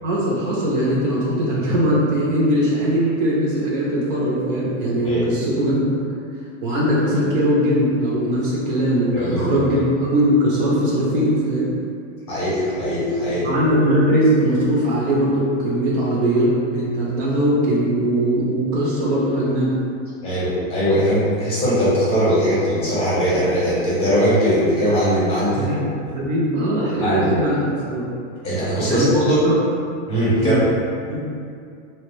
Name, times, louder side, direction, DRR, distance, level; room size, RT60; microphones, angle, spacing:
voice 1, 0.0-5.9 6.6-11.7 13.4-19.7 25.5-28.1 28.8-29.1 29.4-29.5 30.4-30.6 31.1-31.3, equal, 45° right, -5 dB, 0.6 m, -20 dB
voice 2, 9.1-9.7 12.3-13.5 20.2-25.7 27.0-27.3 28.4-29.4 30.1-30.6, equal, 15° left, -9 dB, 0.7 m, -20 dB
2.7 x 2.1 x 3.1 m, 2.4 s
supercardioid pair, 160°, 36 cm